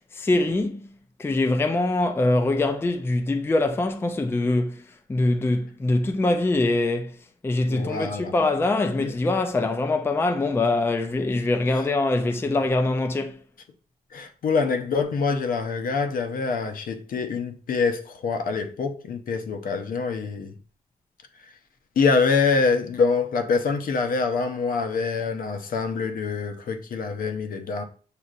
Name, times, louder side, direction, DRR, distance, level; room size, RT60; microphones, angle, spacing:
voice 1, 0.1-0.9 1.2-4.8 5.1-7.1 7.4-13.4, left 2 dB, 15° left, 0.4 m, -23 dB
voice 2, 7.7-8.3 9.0-9.1 11.7-11.8 14.1-20.6 22.0-27.8, left 4 dB, 65° left, 0.7 m, -25 dB
6.4 x 2.8 x 2.4 m
cardioid pair, 105°, 16 cm